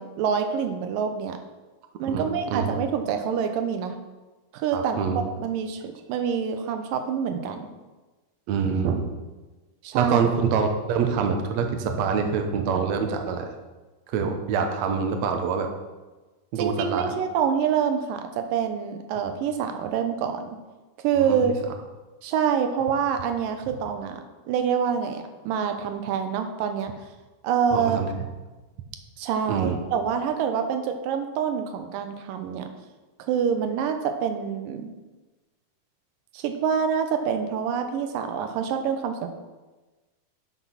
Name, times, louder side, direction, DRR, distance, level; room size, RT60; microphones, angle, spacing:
voice 1, 0.0-1.4 2.0-4.0 4.5-5.1 5.4-7.7 9.8-10.2 16.6-20.5 21.0-21.6 22.2-26.9 27.4-28.0 29.2-32.7 33.3-34.9 36.3-39.3, right 7 dB, 85° right, 6 dB, 2.5 m, -26 dB
voice 2, 2.1-2.8 4.7-5.2 8.5-9.1 9.9-13.5 14.1-15.7 16.5-17.1 21.2-21.4 27.7-28.1 29.5-29.8, right 6 dB, 70° right, 5 dB, 1.9 m, -25 dB
9.7 x 6.1 x 5.8 m, 1.2 s
omnidirectional pair, 4.0 m